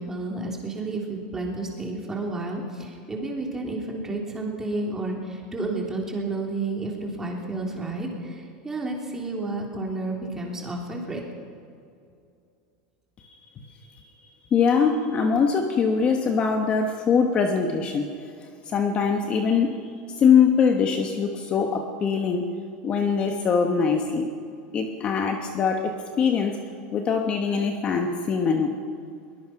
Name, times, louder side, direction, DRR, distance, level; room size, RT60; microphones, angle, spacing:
voice 1, 0.0-11.2, right 2 dB, 10° right, -1 dB, 3.4 m, -31 dB
voice 2, 13.2-13.7 14.5-18.1 18.6-19.8 20.2-22.5 22.8-24.3 24.7-26.6 26.9-28.8, left 6 dB, 25° left, 4 dB, 1.2 m, -22 dB
22.5 x 20.0 x 5.9 m, 2.4 s
supercardioid pair, 160°, 4 cm